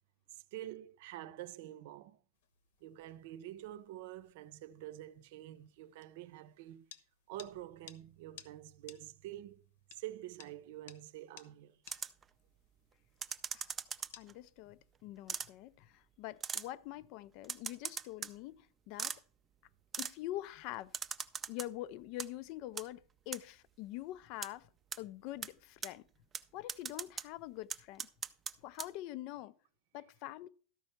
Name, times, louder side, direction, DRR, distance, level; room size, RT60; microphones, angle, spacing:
voice 1, 0.3-2.2 2.8-6.9 7.3-9.6 9.9-11.8, right 13 dB, 60° right, 0.6 m, -47 dB
sound 1, 2.3-15.0, left 9 dB, 70° left, 1.1 m, -61 dB
sound 2, 11.9-12.2 13.2-14.3 15.3-15.5 16.4-16.7 17.4-18.3 19.0-19.2 19.9-20.1 20.9-21.7 22.0-22.3 22.8-22.9 23.3-23.4 24.4-24.5 24.9-25.0 25.4-25.5 25.8-25.9 26.3-26.4 26.7-27.3 27.7-28.5 28.8-28.9, right 6 dB, 15° right, 0.5 m, -39 dB
voice 2, 14.2-19.2 20.0-20.9 21.5-24.7 25.0-26.0 26.5-28.1 28.6-29.5 29.9-30.5, left 15 dB, 45° left, 0.4 m, -45 dB
13.0 x 5.4 x 5.7 m
supercardioid pair, 165°, 0 cm